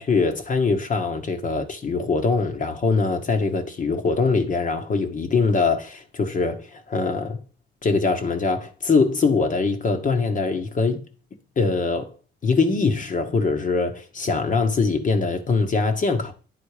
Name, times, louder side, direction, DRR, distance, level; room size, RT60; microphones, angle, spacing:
voice 1, 0.0-7.4 7.8-11.0 11.6-12.1 12.4-16.3, left 4 dB, 40° left, 1.1 m, -22 dB
9.6 x 3.9 x 4.9 m
cardioid pair, 90°, 20 cm